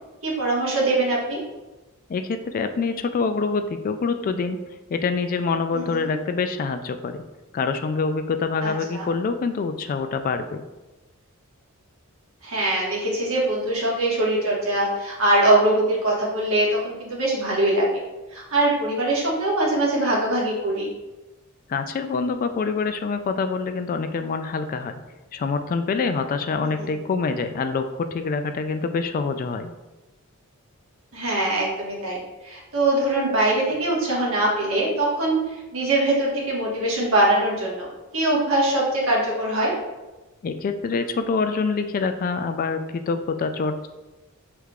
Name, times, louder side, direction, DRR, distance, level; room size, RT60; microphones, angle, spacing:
voice 1, 0.2-1.4 5.7-6.1 8.6-9.1 12.4-18.0 18.3-20.9 26.6-26.9 31.1-35.4 35.7-37.9 38.1-39.7, right 1 dB, 65° right, -4 dB, 1.4 m, -22 dB
voice 2, 2.1-4.6 4.9-7.2 7.5-10.6 21.7-25.0 25.3-29.7 40.4-43.9, left 4 dB, 40° left, 8 dB, 0.3 m, -26 dB
6.3 x 3.4 x 2.4 m, 1.1 s
head